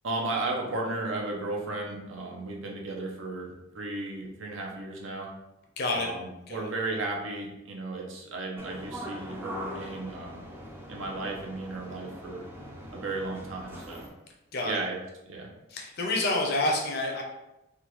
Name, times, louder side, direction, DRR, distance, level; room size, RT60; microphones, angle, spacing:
voice 1, 0.0-5.3 5.9-10.4 10.9-12.4 12.9-14.1 14.6-15.0 15.3-15.5, right 2 dB, 75° right, 0 dB, 0.7 m, -34 dB
voice 2, 5.8-6.1 6.5-6.7 14.5-14.7 15.7-17.2, left 2 dB, 55° left, 1 dB, 0.6 m, -28 dB
sound 1, 8.6-14.1, equal, 10° right, 0.4 m, -42 dB
3.5 x 2.3 x 3.0 m, 0.94 s
head